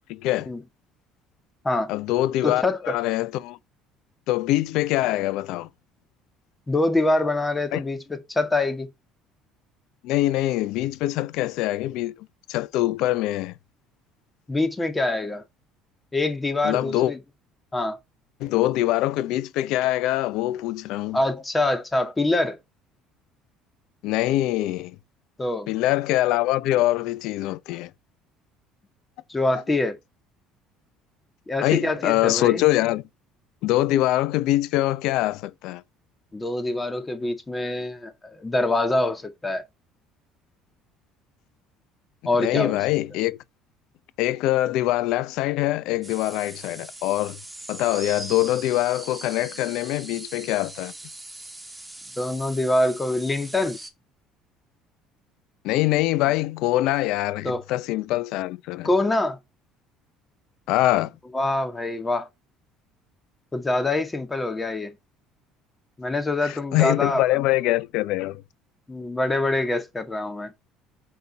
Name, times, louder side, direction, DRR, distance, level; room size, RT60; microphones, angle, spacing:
voice 1, 0.1-0.5 1.9-3.6 4.3-5.7 7.7-7.8 10.0-13.5 16.6-17.1 18.4-21.2 24.0-25.0 25.7-27.9 31.6-33.0 33.6-35.8 42.4-43.4 44.2-47.4 47.7-50.9 55.6-58.9 60.7-61.1 66.4-68.4, left 16 dB, 75° left, 0.6 m, -24 dB
voice 2, 2.4-3.0 6.7-8.9 14.5-15.4 16.1-17.2 17.7-18.0 21.1-22.6 25.4-25.7 29.3-30.0 31.5-32.6 36.3-39.6 42.3-42.8 52.2-53.8 57.4-57.6 58.8-59.4 61.3-62.3 63.5-65.0 66.0-67.2 68.9-70.5, left 2 dB, 15° left, 1.9 m, -25 dB
sound 1, 46.0-53.9, right 2 dB, 5° right, 1.9 m, -41 dB
6.5 x 5.4 x 4.1 m
supercardioid pair, 90°, 0 cm